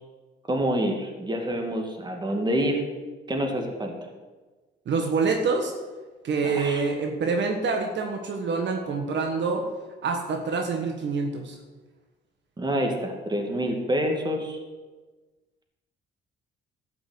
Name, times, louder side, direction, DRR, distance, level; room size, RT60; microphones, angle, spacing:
voice 1, 0.5-2.9 3.3-3.9 6.4-6.8 12.6-14.6, equal, 20° right, 3 dB, 2.5 m, -27 dB
voice 2, 4.8-5.7 6.2-9.7 10.0-11.6, right 4 dB, 65° right, 3 dB, 1.5 m, -26 dB
12.5 x 6.0 x 8.5 m, 1.3 s
cardioid pair, 90°, 20 cm